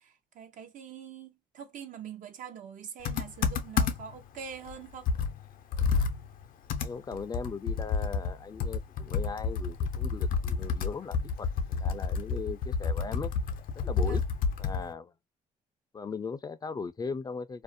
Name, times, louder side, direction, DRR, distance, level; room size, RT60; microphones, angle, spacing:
voice 1, 0.0-5.1 14.0-14.2, right 7 dB, 65° right, 0.6 m, -44 dB
Computer keyboard, 3.0-4.2 4.7-4.8 5.1-14.9, left 5 dB, 80° left, 0.5 m, -30 dB
voice 2, 6.8-13.3 13.8-14.2 14.6-15.1 15.9-17.6, left 5 dB, 25° left, 0.4 m, -38 dB
2.5 x 2.0 x 2.5 m
cardioid pair, 100°, 14 cm